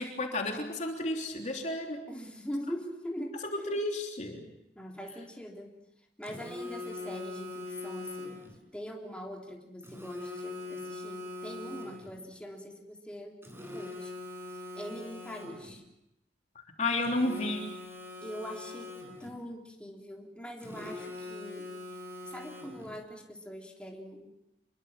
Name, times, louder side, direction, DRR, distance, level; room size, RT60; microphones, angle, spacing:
voice 1, 0.0-2.0 3.4-4.5 16.8-17.7, left 2 dB, 40° left, 2 dB, 3.3 m, -32 dB
voice 2, 2.1-3.4 4.8-5.7 6.2-8.4 8.7-13.4 13.7-14.1 14.7-15.8 18.2-18.9 19.2-21.7 22.2-24.3, equal, 5° left, 0 dB, 3.6 m, -42 dB
Telephone, 6.2-8.6 9.8-12.2 13.4-15.8 17.0-19.4 20.6-23.0, left 2 dB, 15° right, 6.5 m, -42 dB
27.5 x 23.0 x 7.4 m, 0.87 s
head